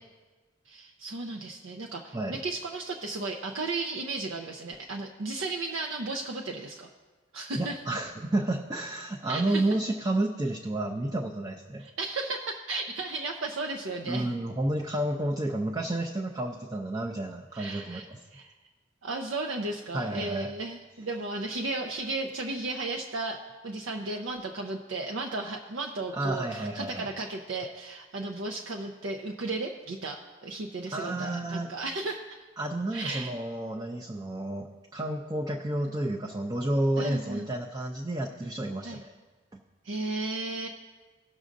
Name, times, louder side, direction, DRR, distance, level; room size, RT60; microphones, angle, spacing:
voice 1, 0.7-6.9 7.3-7.8 9.3-9.6 11.8-14.3 17.5-18.0 18.3-18.5 19.0-23.4 23.6-32.4 32.9-33.3 37.0-37.5 38.8-39.0 39.8-40.7, right 2 dB, 75° right, 1 dB, 0.6 m, -34 dB
voice 2, 7.6-11.9 14.1-18.2 19.9-20.5 26.1-27.1 30.9-31.7 32.6-39.1, right 1 dB, 20° right, -1 dB, 0.5 m, -31 dB
18.5 x 6.2 x 2.6 m, 1.3 s
head